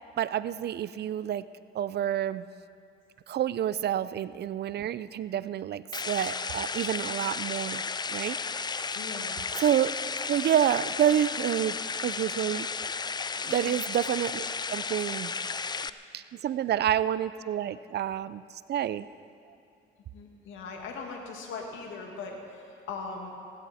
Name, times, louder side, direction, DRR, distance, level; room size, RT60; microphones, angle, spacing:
voice 1, 0.2-1.4 1.7-2.5 3.3-7.8 8.1-9.0 9.6-9.9 10.3-11.8 12.0-12.7 13.4-14.4 14.7-15.3 16.1-19.1, right 10 dB, 55° right, 16 dB, 0.5 m, -28 dB
sound 1, 5.9-15.9, left 5 dB, 20° left, 0.4 m, -33 dB
voice 2, 8.9-9.5 13.4-13.8 20.1-23.3, left 4 dB, 80° left, 1 dB, 2.0 m, -40 dB
17.0 x 16.0 x 4.3 m, 2.4 s
cardioid pair, 90°, 20 cm